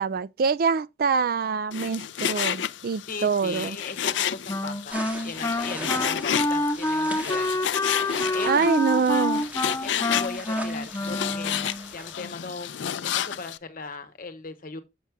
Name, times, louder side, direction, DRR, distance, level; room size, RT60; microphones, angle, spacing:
voice 1, 0.0-3.8 8.5-9.5, right 5 dB, 55° right, 0.4 m, -25 dB
Frying (food), 1.7-13.6, left 9 dB, 90° left, 0.4 m, -31 dB
voice 2, 3.1-7.5 8.0-8.7 9.8-11.7 11.9-12.7 13.0-14.8, left 4 dB, 50° left, 1.1 m, -38 dB
Wind instrument woodwind instrument, 4.5-11.9, left 2 dB, 15° left, 0.5 m, -28 dB
sound 1, 4.9-12.1, equal, 10° right, 1.7 m, -41 dB
7.4 x 6.9 x 3.4 m
head